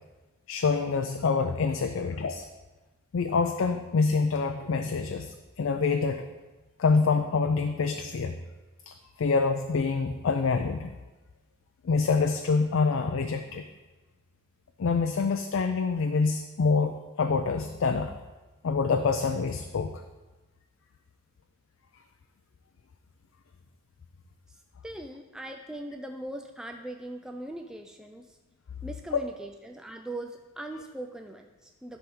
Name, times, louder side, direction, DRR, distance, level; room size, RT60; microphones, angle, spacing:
voice 1, 0.5-2.5 3.1-6.3 6.8-8.4 8.9-10.9 11.8-13.6 14.8-18.2 18.6-20.0 29.1-29.2, left 4 dB, 65° left, 6 dB, 0.4 m, -26 dB
voice 2, 24.8-28.4 28.8-32.0, right 1 dB, 5° right, 3 dB, 0.3 m, -40 dB
10.5 x 3.5 x 6.0 m, 1.2 s
head